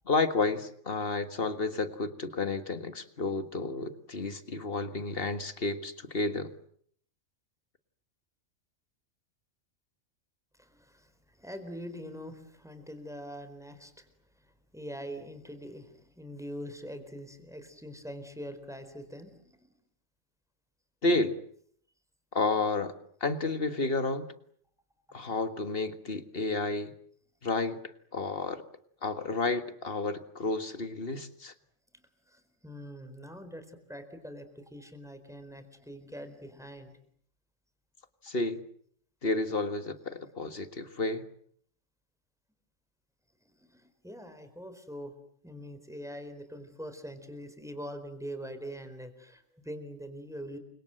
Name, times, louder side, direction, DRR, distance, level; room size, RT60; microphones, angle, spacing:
voice 1, 0.1-6.5 21.0-21.4 22.3-24.3 25.1-26.9 27.4-28.6 29.0-31.5 38.2-38.6 39.2-41.2, left 3 dB, 50° left, 10 dB, 1.9 m, -31 dB
voice 2, 10.6-11.1 11.4-14.1 14.7-19.6 32.3-36.9 43.6-45.1 45.4-50.6, equal, ahead, 9 dB, 4.2 m, -43 dB
30.0 x 25.0 x 7.8 m, 0.64 s
omnidirectional pair, 1.3 m